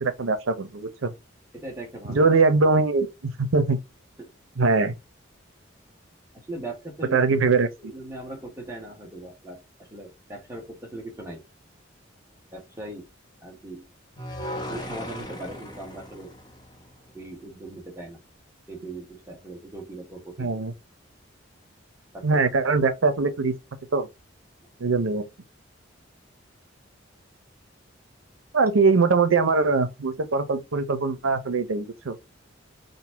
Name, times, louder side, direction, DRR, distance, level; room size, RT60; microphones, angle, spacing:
voice 1, 0.0-1.1 2.1-3.8 4.6-4.9 7.1-7.7 20.4-20.7 22.2-23.5 23.9-24.1 24.8-25.2 28.5-32.2, right 4 dB, 90° right, 0.7 m, -22 dB
voice 2, 1.5-2.3 4.2-4.3 6.3-7.2 7.8-11.4 12.5-13.1 13.4-13.9 14.6-16.3 17.1-18.2 18.7-20.6 22.1-22.4, right 1 dB, 15° right, 1.2 m, -39 dB
sound 1, 14.2-17.4, equal, 20° left, 0.7 m, -37 dB
3.9 x 2.1 x 4.5 m
head